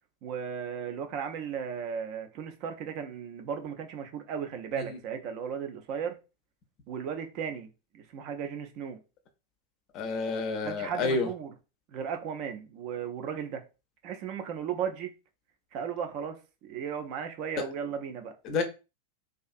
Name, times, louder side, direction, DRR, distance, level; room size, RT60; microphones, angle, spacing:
voice 1, 0.2-6.2 6.9-7.7 7.9-9.0 10.6-11.5 11.9-13.6 14.0-15.1 15.7-16.4 16.6-18.3, right 7 dB, 40° right, 0.4 m, -35 dB
voice 2, 9.9-11.3 18.5-18.6, left 4 dB, 35° left, 0.5 m, -29 dB
2.4 x 2.4 x 2.5 m
figure-of-eight pair, 90°, 0 cm